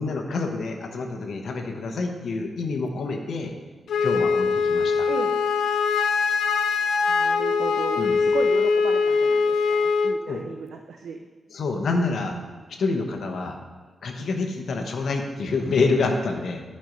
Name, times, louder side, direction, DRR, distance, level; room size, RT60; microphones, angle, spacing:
voice 1, 0.0-3.5 4.0-5.0 8.0-8.2 10.3-10.4 11.5-12.4 12.8-13.6 14.0-16.6, left 3 dB, 65° left, 3 dB, 1.0 m, -27 dB
Wind instrument woodwind instrument, 3.9-10.2, left 5 dB, 85° left, 0.4 m, -22 dB
voice 2, 7.1-11.3, right 5 dB, 80° right, 3 dB, 0.5 m, -35 dB
11.0 x 4.4 x 5.2 m, 1.3 s
wide cardioid pair, 175°, 0 cm